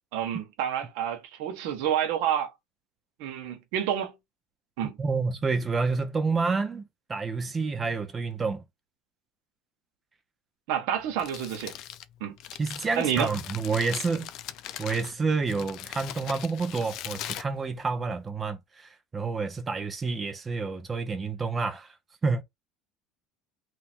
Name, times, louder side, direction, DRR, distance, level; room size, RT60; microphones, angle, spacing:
voice 1, 0.1-2.5 3.2-4.1 4.8-5.0 10.7-11.7 12.2-12.4 13.0-13.3, right 9 dB, 75° right, 1.4 m, -29 dB
voice 2, 5.0-6.8 7.1-8.6 12.6-14.3 14.8-22.0 22.2-22.4, right 4 dB, 20° right, 1.0 m, -29 dB
Crumpling crinkling, 11.0-18.3, left 12 dB, 60° left, 0.5 m, -41 dB
3.4 x 3.0 x 4.5 m
supercardioid pair, 120°, 0 cm